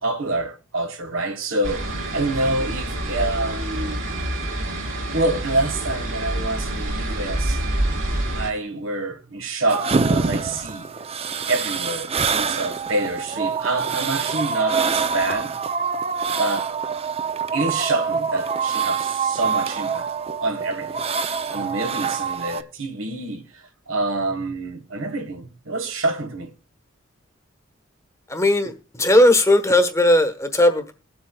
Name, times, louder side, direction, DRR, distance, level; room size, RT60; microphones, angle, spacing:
voice 1, 0.0-4.0 5.1-7.6 8.3-10.9 11.5-15.6 16.4-16.7 17.5-20.1 20.4-21.0 21.5-26.5, right 2 dB, 90° right, 1.4 m, -27 dB
sound 1, 1.6-8.5, right 1 dB, 70° right, 3.9 m, -27 dB
sound 2, 9.7-22.6, right 5 dB, 30° right, 0.5 m, -25 dB
voice 2, 28.3-28.7 29.0-30.9, left 1 dB, 15° left, 1.1 m, -17 dB
22.0 x 7.8 x 2.3 m
head